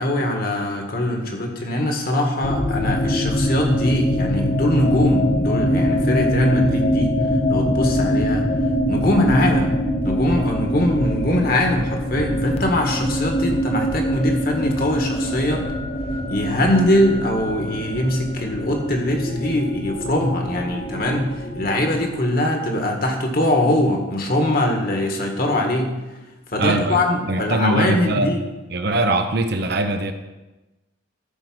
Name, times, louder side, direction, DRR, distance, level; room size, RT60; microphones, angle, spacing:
voice 1, 0.0-7.1 7.5-8.5 8.9-9.7 10.0-15.7 16.3-25.9 26.5-28.4, left 1 dB, 45° left, 2 dB, 1.7 m, -22 dB
sound 1, 2.4-22.3, equal, 30° left, 0.8 m, -23 dB
voice 2, 26.6-27.0 27.3-28.3 28.7-30.1, right 2 dB, 50° right, 7 dB, 0.8 m, -21 dB
13.5 x 4.7 x 6.2 m, 1.1 s
head